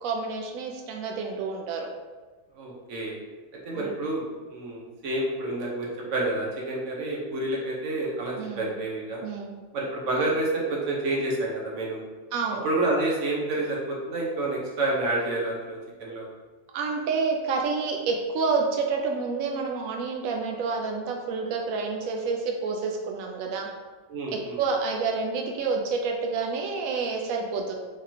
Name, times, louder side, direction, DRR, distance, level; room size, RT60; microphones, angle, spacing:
voice 1, 0.0-1.9 3.8-3.9 8.4-8.7 9.2-9.5 12.3-12.7 16.7-23.7 24.3-27.7, right 4 dB, 90° right, 1 dB, 0.7 m, -29 dB
voice 2, 2.6-3.1 3.6-9.2 9.7-12.0 12.6-16.2 24.1-24.6, right 2 dB, 50° right, -3 dB, 1.1 m, -29 dB
4.7 x 3.8 x 2.8 m, 1.3 s
omnidirectional pair, 2.1 m